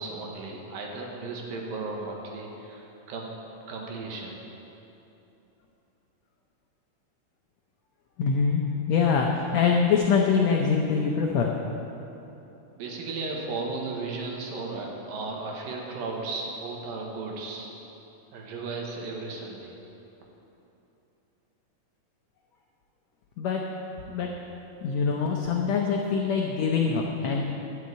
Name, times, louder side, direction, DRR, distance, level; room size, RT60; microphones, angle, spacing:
voice 1, 0.0-3.3 3.7-4.4 12.8-17.7 18.3-19.7, right 3 dB, 75° right, -1 dB, 3.2 m, -35 dB
voice 2, 8.2-11.6 23.4-23.7 24.1-24.4 24.8-27.4, left 5 dB, 80° left, 1 dB, 1.5 m, -24 dB
12.5 x 7.2 x 8.5 m, 3.0 s
omnidirectional pair, 4.1 m